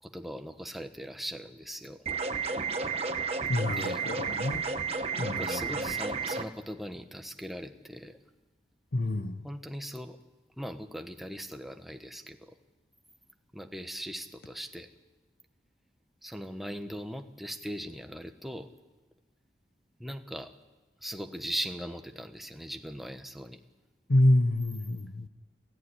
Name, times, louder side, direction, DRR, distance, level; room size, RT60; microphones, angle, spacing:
voice 1, 0.0-2.1 3.6-4.0 5.2-8.2 9.4-10.2 10.6-12.6 13.5-14.9 16.2-18.7 20.0-20.5 21.0-23.6, equal, ahead, 1.3 m, -39 dB
sound 1, 2.1-6.4, right 4 dB, 35° right, 1.2 m, -32 dB
voice 2, 3.5-4.7 5.2-5.5 8.9-9.4 24.1-25.3, left 1 dB, 65° left, 0.9 m, -27 dB
29.5 x 14.5 x 10.0 m
head